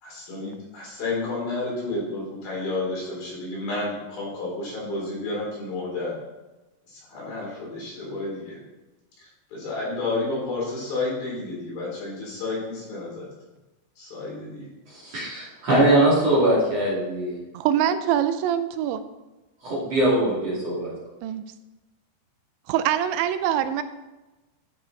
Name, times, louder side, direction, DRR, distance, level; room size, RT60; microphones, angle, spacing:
voice 1, 0.0-6.1 6.9-8.6 9.2-13.2 14.0-14.7, left 2 dB, 55° left, -5 dB, 5.4 m, -31 dB
voice 2, 14.9-17.4 19.6-20.9, right 1 dB, 40° right, -7 dB, 3.4 m, -21 dB
voice 3, 17.5-19.0 21.2-21.5 22.7-23.8, right 10 dB, 85° right, 11 dB, 3.0 m, -24 dB
13.0 x 6.8 x 4.1 m, 1.1 s
omnidirectional pair, 5.1 m